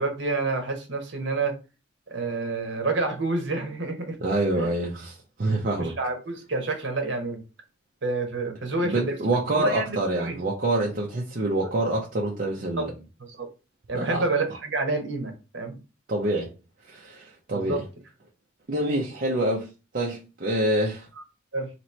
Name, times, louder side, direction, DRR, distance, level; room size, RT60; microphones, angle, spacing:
voice 1, 0.0-1.6 2.1-4.1 4.6-4.7 5.8-7.4 8.0-9.1 9.5-10.4 12.5-12.9 13.2-13.5 13.9-15.8 17.5-17.8 21.2-21.3 21.5-21.7, right 3 dB, 65° right, 1.0 m, -28 dB
voice 2, 4.2-5.9 8.8-12.9 13.9-14.2 16.1-16.5 16.9-17.8 18.7-19.7 19.9-21.1, right 1 dB, 50° right, 0.6 m, -26 dB
3.0 x 2.9 x 4.2 m
head